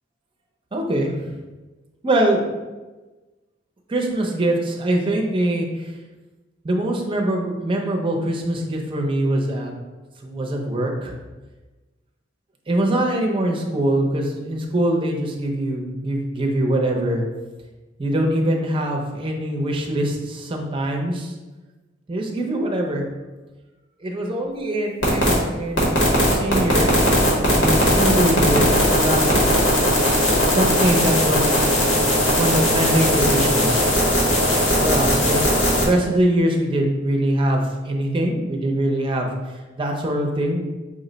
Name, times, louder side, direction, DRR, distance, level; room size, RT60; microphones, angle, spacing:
voice 1, 0.7-1.2 2.0-2.4 3.9-5.9 6.6-9.7 10.2-11.1 12.7-17.2 18.0-21.3 22.1-23.1 24.0-27.0 27.3-29.2 30.5-33.8 34.8-39.3 39.8-40.6, right 1 dB, 30° right, 1 dB, 0.6 m, -23 dB
sound 1, 25.0-25.3 25.8-35.9, equal, 85° left, 1.2 m, -18 dB
5.1 x 2.1 x 3.8 m, 1.2 s
head